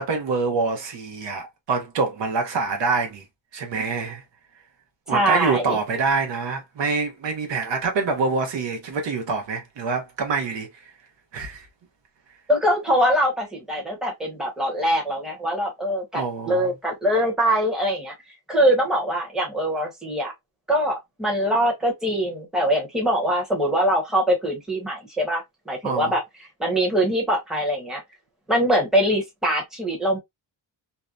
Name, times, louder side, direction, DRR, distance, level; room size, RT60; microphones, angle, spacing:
voice 1, 0.0-3.2 3.5-4.2 5.1-10.9 11.3-11.7 16.1-16.7 25.8-26.1, right 4 dB, 60° right, 0.8 m, -26 dB
voice 2, 5.1-5.8 12.5-18.1 18.5-20.3 20.7-26.2 26.6-28.0 28.5-30.2, equal, ahead, 0.9 m, -23 dB
2.7 x 2.1 x 2.3 m
wide cardioid pair, 150°, 48 cm